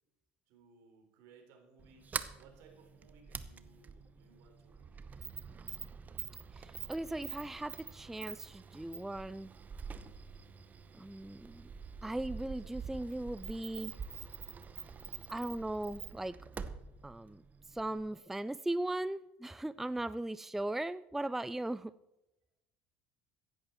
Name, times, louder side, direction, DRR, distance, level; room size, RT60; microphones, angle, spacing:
voice 1, 0.5-2.1 2.4-5.3, right 5 dB, 70° right, 3 dB, 3.7 m, -62 dB
Sliding door, 1.8-18.2, right 5 dB, 30° right, 0.9 m, -46 dB
voice 2, 6.5-9.5 11.0-11.7 12.0-13.9 15.3-16.4 17.0-17.4 17.7-21.9, right 1 dB, 5° right, 17 dB, 0.3 m, -38 dB
15.0 x 11.0 x 4.4 m, 0.96 s
supercardioid pair, 85°, 5 cm